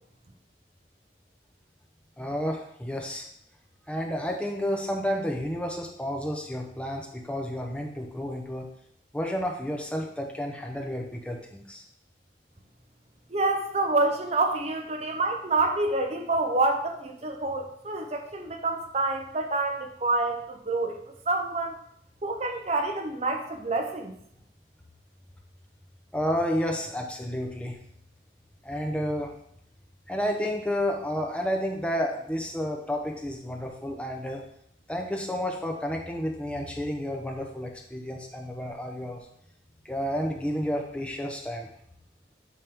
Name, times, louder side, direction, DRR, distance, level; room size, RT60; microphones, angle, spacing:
voice 1, 2.2-3.2 3.9-8.7 9.1-11.8 26.1-27.8 28.6-29.3 30.1-34.4 34.9-39.2 39.8-41.7, equal, 5° left, 1 dB, 0.8 m, -31 dB
voice 2, 13.3-21.0 21.3-21.8 22.2-24.1, right 2 dB, 35° right, 4 dB, 0.7 m, -27 dB
8.5 x 5.2 x 3.7 m, 0.69 s
head